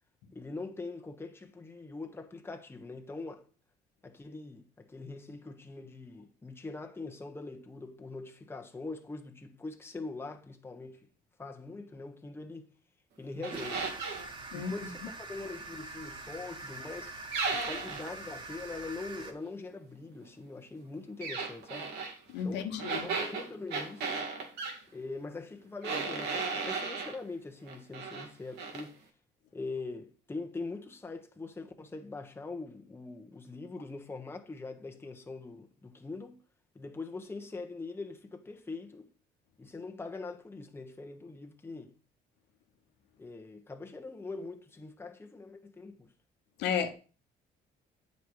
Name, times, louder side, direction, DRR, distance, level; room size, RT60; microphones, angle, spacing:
voice 1, 0.3-3.4 4.0-11.0 11.4-12.7 13.2-13.9 14.5-17.1 17.5-21.9 22.4-22.7 23.0-24.2 24.9-29.0 29.5-36.4 36.7-39.1 39.6-41.9 43.2-46.1, left 3 dB, 15° left, 1.2 m, -42 dB
sound 1, 13.4-14.3 17.3-18.1 21.2-22.1 22.8-24.8 25.8-27.2 27.7-28.3 28.6-28.8, right 4 dB, 80° right, 2.0 m, -35 dB
sound 2, 13.5-19.3, right 3 dB, 30° right, 1.5 m, -44 dB
voice 2, 22.3-23.1 46.6-46.9, left 7 dB, 90° left, 1.1 m, -32 dB
8.3 x 5.4 x 4.8 m
cardioid pair, 110°, 17 cm